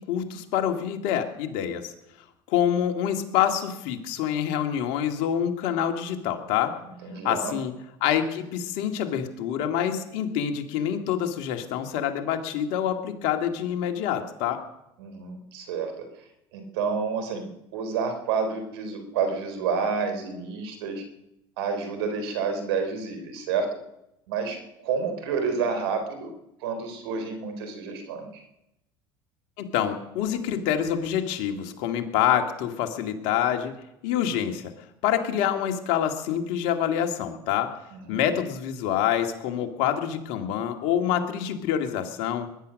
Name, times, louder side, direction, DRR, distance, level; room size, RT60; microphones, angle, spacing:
voice 1, 0.0-1.9 2.5-6.7 7.2-7.7 8.0-14.6 29.6-33.7 34.0-34.7 35.0-37.7 38.1-42.5, left 9 dB, 70° left, 6 dB, 2.1 m, -26 dB
voice 2, 7.0-7.5 15.0-15.9 16.5-21.0 21.6-23.7 24.3-24.6 24.8-26.3 26.6-28.4 37.9-38.2, right 5 dB, 80° right, 6 dB, 4.0 m, -29 dB
21.0 x 10.5 x 6.4 m, 0.85 s
hypercardioid pair, 80°, 13 cm